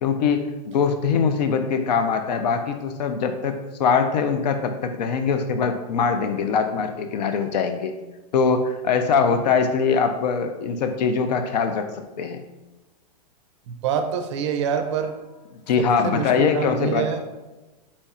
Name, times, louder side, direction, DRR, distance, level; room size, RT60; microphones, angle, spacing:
voice 1, 0.0-7.9 8.3-11.9 12.2-12.4 15.5-17.1, left 5 dB, 75° left, 7 dB, 0.5 m, -22 dB
voice 2, 13.7-15.1 15.8-17.2, right 7 dB, 45° right, 6 dB, 0.5 m, -26 dB
4.2 x 2.4 x 4.2 m, 1.1 s
hypercardioid pair, 155°, 21 cm